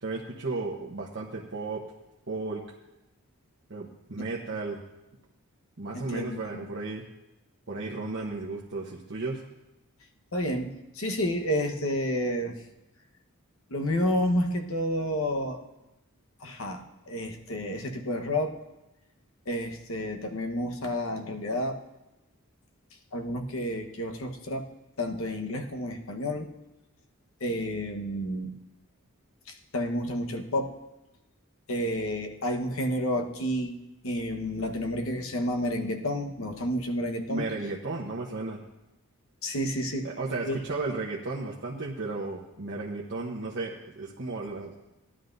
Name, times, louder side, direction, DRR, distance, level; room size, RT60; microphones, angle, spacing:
voice 1, 0.0-1.8 2.3-2.6 3.7-4.8 5.8-7.0 7.7-9.4 37.3-38.6 40.0-44.7, right 3 dB, 55° right, -3 dB, 1.0 m, -34 dB
voice 2, 5.9-6.6 10.3-12.6 13.7-15.6 16.4-18.6 19.5-21.8 23.1-24.7 25.0-26.5 27.4-28.6 29.7-30.7 31.7-37.5 39.4-40.1 40.4-40.6, equal, 65° left, 4 dB, 1.2 m, -30 dB
18.0 x 11.0 x 2.6 m, 0.98 s
head